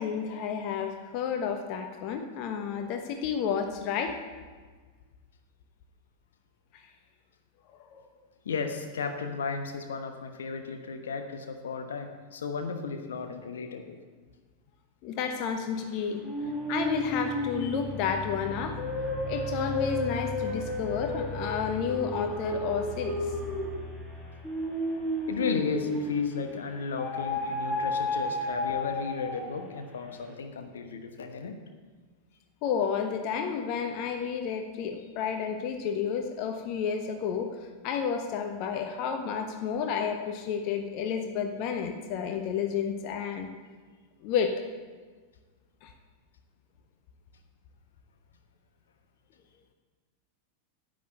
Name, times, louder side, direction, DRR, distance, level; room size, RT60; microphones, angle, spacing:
voice 1, 0.0-4.2 6.7-6.8 7.7-8.0 15.0-16.2 16.7-18.8 19.2-23.2 32.6-37.5 37.8-43.5 44.2-44.6 45.8-45.9, left 7 dB, 40° left, 5 dB, 1.1 m, -31 dB
voice 2, 8.4-14.0 25.3-31.5, left 5 dB, 65° left, 5 dB, 1.2 m, -34 dB
sound 1, 16.2-26.4 27.0-29.7, left 1 dB, 15° left, 2.8 m, -32 dB
10.5 x 9.0 x 8.0 m, 1.5 s
figure-of-eight pair, 90°, 0 cm